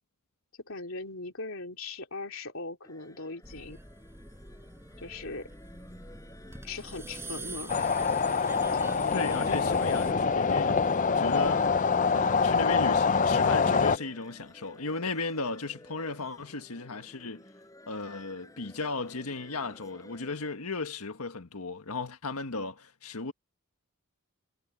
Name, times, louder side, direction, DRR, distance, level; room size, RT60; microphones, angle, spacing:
voice 1, 0.7-3.8 5.0-5.5 6.6-7.9 8.7-8.9, left 3 dB, 65° left, 3.3 m, -40 dB
sound 1, 2.8-20.5, left 1 dB, 15° left, 7.8 m, -52 dB
sound 2, 3.4-10.1, right 2 dB, 10° right, 6.5 m, -45 dB
sound 3, 7.7-14.0, left 5 dB, 35° left, 0.5 m, -25 dB
voice 2, 9.1-11.7 12.1-17.4 17.9-23.3, left 3 dB, 85° left, 1.6 m, -35 dB
head